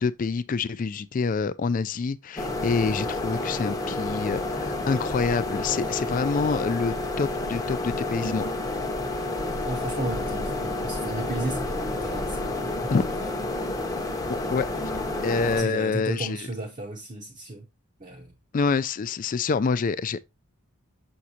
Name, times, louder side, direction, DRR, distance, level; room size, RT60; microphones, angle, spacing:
voice 1, 0.0-8.5 12.9-13.0 14.5-14.7 15.2-16.4 18.5-20.2, left 4 dB, 35° left, 0.3 m, -26 dB
sound 1, 2.4-15.6, left 2 dB, 15° left, 0.8 m, -30 dB
voice 2, 9.6-12.7 14.7-14.9 15.3-17.7 18.0-18.3, right 2 dB, 35° right, 0.7 m, -34 dB
6.3 x 5.9 x 2.7 m
head